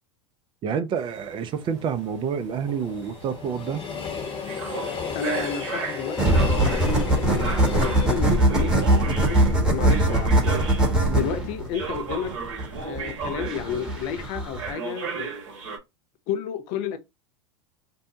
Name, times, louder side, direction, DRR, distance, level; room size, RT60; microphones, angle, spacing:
voice 1, 0.6-3.8 11.1-11.3, right 7 dB, 30° right, 0.4 m, -28 dB
sound 1, 1.0-11.2 11.7-14.2 14.6-15.8, right 5 dB, 75° right, 0.9 m, -35 dB
Train, 1.5-10.5 10.9-11.0, left 6 dB, 40° left, 1.0 m, -35 dB
voice 2, 5.1-10.6 11.1-12.3 12.8-15.3 16.3-17.0, left 7 dB, 55° left, 0.6 m, -32 dB
sound 2, 6.2-14.7, right 1 dB, 5° right, 1.0 m, -22 dB
2.7 x 2.1 x 2.7 m
hypercardioid pair, 95°, 16 cm